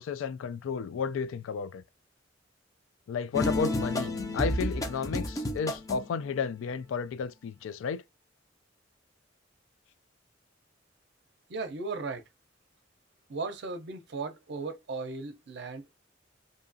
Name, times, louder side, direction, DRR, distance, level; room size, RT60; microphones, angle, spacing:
voice 1, 0.0-1.8 3.1-8.0, left 6 dB, 90° left, 0.3 m, -32 dB
sound 1, 3.3-6.2, left 1 dB, 20° left, 0.5 m, -31 dB
voice 2, 11.5-12.2 13.3-16.0, right 3 dB, 60° right, 0.5 m, -36 dB
2.7 x 2.3 x 2.5 m
head